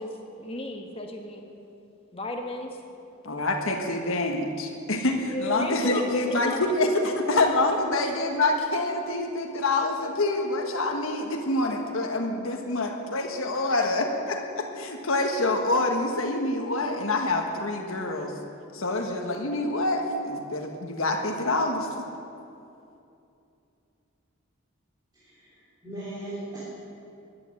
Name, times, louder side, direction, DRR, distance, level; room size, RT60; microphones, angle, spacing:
voice 1, 0.0-1.4 2.1-2.8 5.3-6.6 7.0-7.1 7.9-8.0, left 1 dB, 25° left, 3 dB, 1.4 m, -34 dB
voice 2, 3.2-18.3 18.7-21.9, left 2 dB, 75° left, 2 dB, 1.5 m, -26 dB
voice 3, 25.1-26.6, right 1 dB, 20° right, -10 dB, 3.3 m, -39 dB
14.0 x 9.6 x 9.8 m, 2.7 s
head